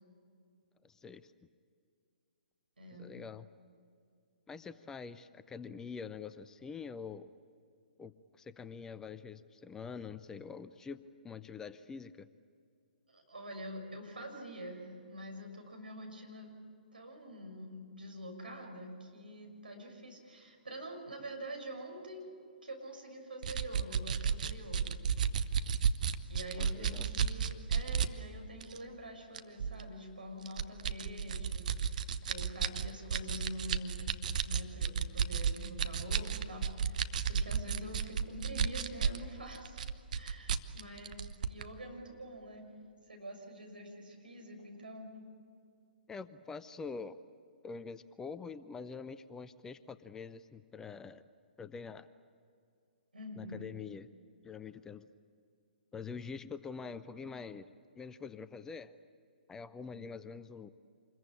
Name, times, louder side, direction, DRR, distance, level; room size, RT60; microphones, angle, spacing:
voice 1, 0.8-1.3 3.0-3.5 4.5-7.3 8.0-12.3 26.6-27.1 46.1-47.2 47.6-51.2 51.6-52.1 53.4-54.1 54.4-55.1 55.9-58.9 59.5-60.7, left 5 dB, 10° left, 14 dB, 0.6 m, -45 dB
voice 2, 2.8-3.1 13.1-16.5 16.9-22.3 22.6-25.0 26.3-32.0 32.3-34.1 34.4-39.8 40.1-42.7 43.1-45.1 53.1-53.7, equal, 75° right, 2 dB, 6.3 m, -46 dB
sound 1, 23.4-28.1 28.6-28.8 29.3-29.8 30.5-39.2 39.6-41.6, right 7 dB, 55° right, 1.1 m, -32 dB
27.0 x 21.5 x 8.6 m, 2.4 s
figure-of-eight pair, 125°, 5 cm